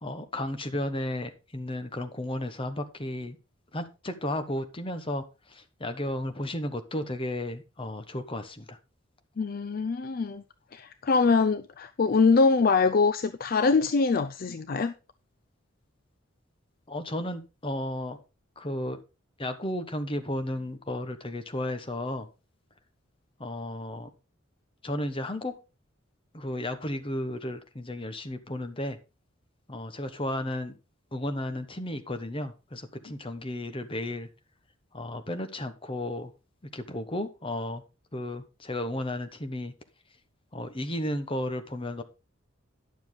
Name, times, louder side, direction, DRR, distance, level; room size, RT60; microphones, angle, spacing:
voice 1, 0.0-3.4 3.7-8.8 16.9-18.2 18.6-19.0 19.4-22.3 23.4-24.1 24.8-25.5 26.3-29.0 29.7-30.7 31.1-34.3 34.9-36.3 36.7-37.8 38.1-39.7 40.5-42.0, left 1 dB, 25° left, 1.1 m, -33 dB
voice 2, 9.4-10.4 10.7-14.9, left 4 dB, 45° left, 0.4 m, -23 dB
10.5 x 7.1 x 3.9 m
head